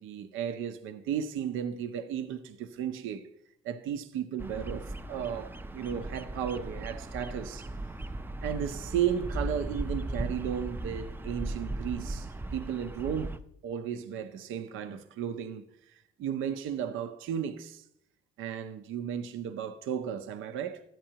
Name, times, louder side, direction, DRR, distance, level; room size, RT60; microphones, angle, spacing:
voice 1, 0.0-3.3 3.6-7.7 8.4-13.4 13.6-17.9 18.4-20.8, right 9 dB, 90° right, 0.6 m, -34 dB
Bird vocalization bird call bird song, 4.4-13.4, right 1 dB, 10° right, 0.4 m, -37 dB
13.0 x 8.9 x 2.8 m
cardioid pair, 90°, 20 cm